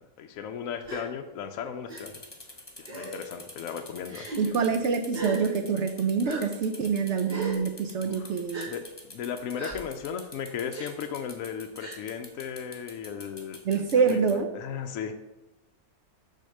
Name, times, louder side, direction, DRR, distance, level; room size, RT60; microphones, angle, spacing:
voice 1, 0.0-2.2 2.8-4.5 8.0-8.3 8.7-13.8 14.1-15.1, left 7 dB, 70° left, 5 dB, 0.9 m, -36 dB
Gasp, 0.8-1.0 1.9-2.0 2.8-3.2 4.1-4.4 5.1-5.4 6.2-6.4 7.3-7.6 8.5-8.7 9.6-9.8 10.7-10.9 11.8-12.0, right 3 dB, 25° right, 2.1 m, -36 dB
sound 1, 1.9-14.3, left 2 dB, 20° left, 1.1 m, -46 dB
voice 2, 4.4-8.7 13.6-14.5, right 5 dB, 60° right, 7 dB, 0.8 m, -26 dB
6.4 x 4.2 x 6.5 m, 0.99 s
omnidirectional pair, 1.6 m